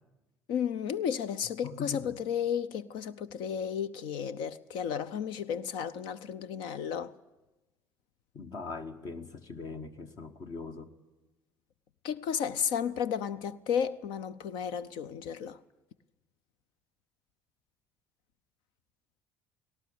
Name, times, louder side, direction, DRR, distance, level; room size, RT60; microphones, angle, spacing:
voice 1, 0.5-7.1 12.0-15.6, left 8 dB, 65° left, 0.6 m, -33 dB
voice 2, 1.6-2.1 8.3-10.9, left 4 dB, 50° left, 1.3 m, -41 dB
18.0 x 18.0 x 8.5 m
hypercardioid pair, 60°, 9 cm